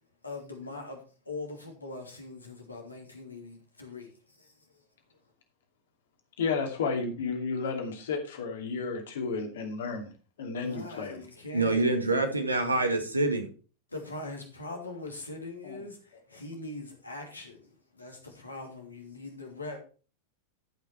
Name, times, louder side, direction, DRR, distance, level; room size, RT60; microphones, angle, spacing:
voice 1, 0.2-1.0 1.2-4.1 4.4-4.5 10.6-11.9 13.9-19.8, left 2 dB, 80° left, 1 dB, 2.9 m, -41 dB
voice 2, 6.4-10.1 10.4-11.2 15.6-15.8, left 4 dB, 60° left, 4 dB, 2.5 m, -32 dB
voice 3, 11.5-13.5, right 2 dB, 80° right, 6 dB, 1.9 m, -26 dB
13.5 x 5.9 x 4.4 m, 0.37 s
figure-of-eight pair, 90°, 0 cm